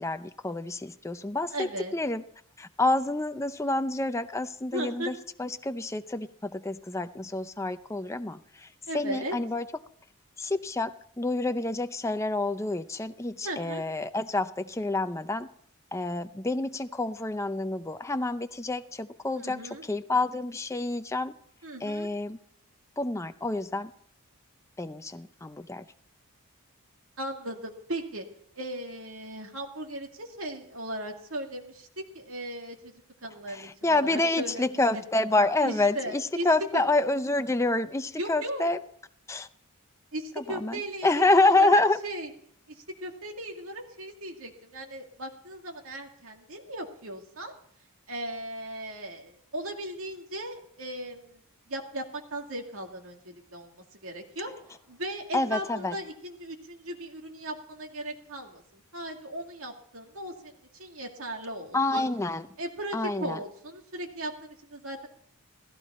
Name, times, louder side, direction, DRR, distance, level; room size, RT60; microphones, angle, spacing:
voice 1, 0.0-1.7 1.9-2.2 2.6-5.1 5.4-8.7 8.9-9.7 10.4-15.5 15.9-21.3 21.8-22.4 23.0-23.9 24.8-25.8 33.5-38.8 39.3-39.5 40.4-42.0 55.3-56.0 61.7-62.4 62.9-63.4, left 2 dB, 15° left, 9 dB, 0.5 m, -28 dB
voice 2, 1.5-1.9 4.7-5.1 8.9-9.4 13.4-13.8 19.4-19.8 21.6-22.1 27.2-28.2 28.6-32.9 33.2-34.7 34.9-35.0 35.6-36.5 36.7-36.8 38.2-38.7 40.1-42.3 42.7-47.5 48.1-54.5 54.9-62.1 62.6-65.1, right 1 dB, 65° right, 2 dB, 2.2 m, -37 dB
16.0 x 15.0 x 4.3 m, 0.62 s
head